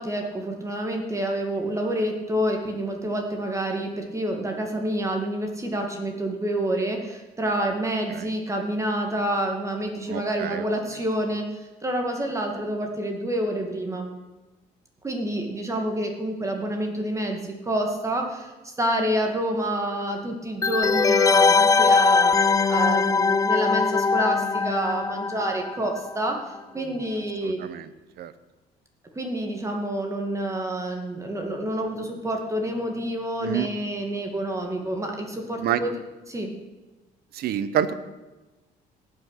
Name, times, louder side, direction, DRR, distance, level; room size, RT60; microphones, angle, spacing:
voice 1, 0.0-14.1 15.0-27.6 29.2-35.9 36.3-36.5, right 1 dB, 20° right, 2 dB, 2.1 m, -28 dB
voice 2, 10.1-10.7 27.4-27.9 28.2-28.3 33.4-33.7 35.6-35.8 37.3-37.9, right 10 dB, 70° right, 13 dB, 1.0 m, -27 dB
sound 1, 20.6-26.1 26.3-26.4, left 4 dB, 20° left, 0.4 m, -21 dB
18.0 x 6.0 x 6.6 m, 1.1 s
cardioid pair, 110°, 17 cm